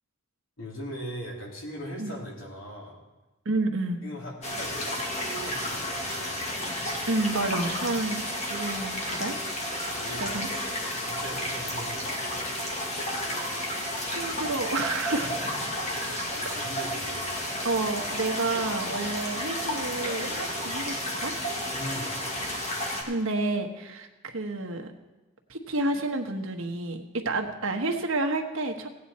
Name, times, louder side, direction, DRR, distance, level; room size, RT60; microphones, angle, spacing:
voice 1, 0.6-3.0 4.0-5.0 5.3-5.9 10.0-10.3 11.0-12.2 15.2-17.3 21.7-22.2, equal, 75° left, -2 dB, 2.9 m, -39 dB
voice 2, 3.4-4.0 7.1-9.4 10.2-10.5 14.0-15.3 17.6-21.3 23.1-24.9 25.5-28.9, right 2 dB, 80° right, 4 dB, 1.2 m, -30 dB
sound 1, 4.4-23.0, left 1 dB, 35° left, 1.9 m, -32 dB
16.5 x 9.2 x 4.2 m, 1.1 s
head